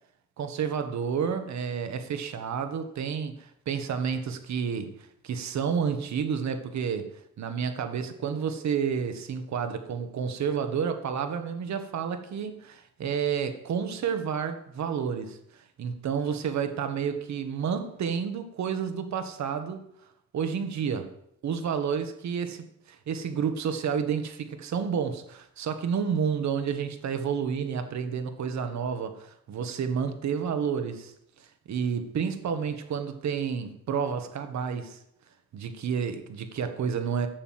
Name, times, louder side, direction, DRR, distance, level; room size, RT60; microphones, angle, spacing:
voice 1, 0.4-7.1 7.4-19.8 20.3-21.1 21.4-31.1 31.4-35.0 35.5-37.3, right 7 dB, 65° right, 1.8 m, -30 dB
14.0 x 7.0 x 7.7 m
cardioid pair, 90°, 30 cm